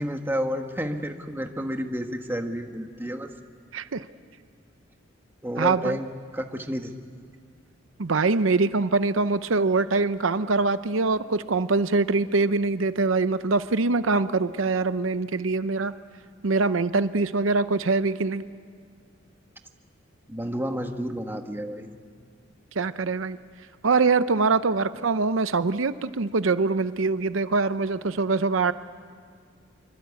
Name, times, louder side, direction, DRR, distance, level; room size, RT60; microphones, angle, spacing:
voice 1, 0.0-3.3 5.4-6.1 6.3-7.2 20.3-21.9, equal, 10° right, 4 dB, 1.5 m, -30 dB
voice 2, 3.7-4.1 5.6-6.0 8.0-15.9 16.4-18.5 22.7-23.4 23.8-28.7, right 3 dB, 80° right, 13 dB, 0.7 m, -23 dB
26.0 x 24.5 x 8.4 m, 2.1 s
head